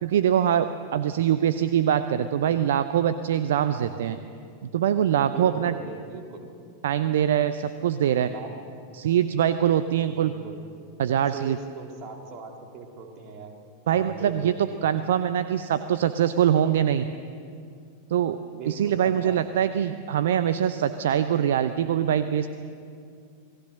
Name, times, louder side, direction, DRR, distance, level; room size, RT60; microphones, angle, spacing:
voice 1, 0.0-4.2 4.7-5.7 6.8-8.3 8.9-10.3 11.0-11.6 13.9-14.5 14.8-17.1 18.1-18.4 18.7-22.5, right 9 dB, 60° right, 12 dB, 0.7 m, -23 dB
voice 2, 3.7-4.0 5.3-6.5 8.3-8.5 10.0-10.7 11.3-13.5 13.8-14.6 18.5-19.4, right 4 dB, 40° right, 2 dB, 3.2 m, -40 dB
27.5 x 18.5 x 6.5 m, 2.4 s
figure-of-eight pair, 90°, 0 cm